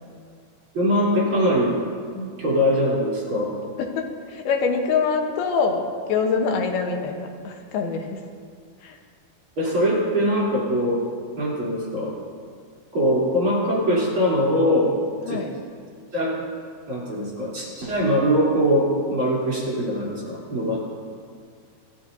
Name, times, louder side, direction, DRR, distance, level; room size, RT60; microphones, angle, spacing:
voice 1, 0.7-1.7 2.1-3.5 9.6-11.0 11.4-12.1 12.9-15.0 15.3-15.4 16.1-16.4 16.9-20.8, equal, 35° right, -7 dB, 4.1 m, -22 dB
voice 2, 3.8-8.3 8.8-9.0 15.3-15.5, left 5 dB, 90° left, 3 dB, 3.1 m, -25 dB
24.5 x 13.0 x 2.8 m, 2.1 s
omnidirectional pair, 4.3 m